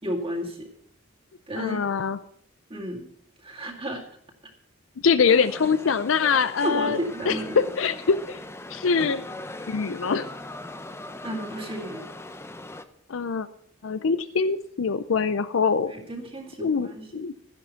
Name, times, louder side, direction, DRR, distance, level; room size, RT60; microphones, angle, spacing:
voice 1, 0.0-0.7 1.5-1.8 2.7-3.1 3.4-4.0 6.6-7.7 11.2-12.0 15.9-17.1, equal, 30° right, 0 dB, 2.2 m, -32 dB
voice 2, 1.6-2.2 5.0-7.0 7.3-8.4 8.7-9.3 9.7-10.3 13.1-13.5 13.8-15.9 16.6-17.3, left 5 dB, 80° left, 13 dB, 0.5 m, -23 dB
sound 1, 5.3-12.8, left 2 dB, 15° left, 0.7 m, -40 dB
12.0 x 10.5 x 5.7 m, 0.65 s
head